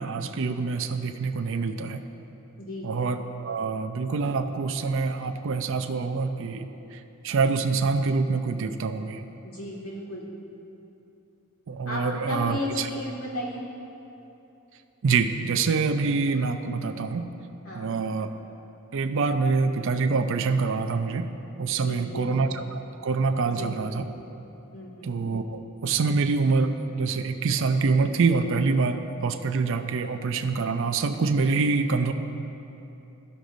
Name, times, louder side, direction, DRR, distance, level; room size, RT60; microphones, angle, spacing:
voice 1, 0.0-2.0 2.8-6.7 7.2-9.2 11.7-12.9 15.0-17.3 17.8-18.3 18.9-21.3 21.6-24.0 25.0-32.1, right 4 dB, 60° right, 8 dB, 0.4 m, -25 dB
voice 2, 2.6-2.9 9.4-10.3 11.9-13.7 17.6-17.9 21.7-22.3 23.5-23.8 24.7-25.1, left 1 dB, 85° left, -5 dB, 1.9 m, -35 dB
14.5 x 6.1 x 2.6 m, 2.9 s
head